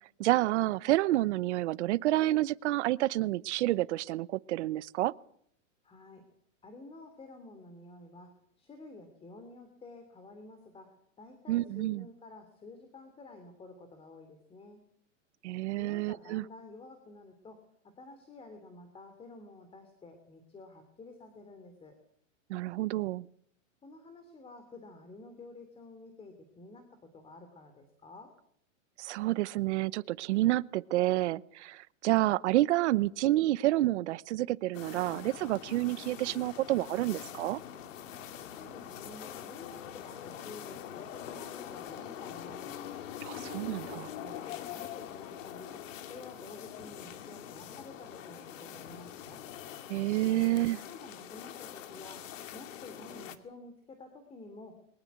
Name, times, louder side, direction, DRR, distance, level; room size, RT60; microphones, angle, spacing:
voice 1, 0.2-5.1 11.5-12.1 15.4-16.4 22.5-23.3 29.0-37.6 43.2-44.1 49.9-50.8, right 16 dB, 60° right, 0.9 m, -29 dB
voice 2, 5.8-6.2 6.6-14.8 15.7-22.0 23.8-28.3 38.5-42.8 43.3-45.7 46.1-49.4 50.3-52.2 52.5-54.8, left 2 dB, 15° left, 3.0 m, -50 dB
sound 1, 34.7-53.4, left 10 dB, 70° left, 2.5 m, -44 dB
23.0 x 20.0 x 8.2 m
supercardioid pair, 150°, 40 cm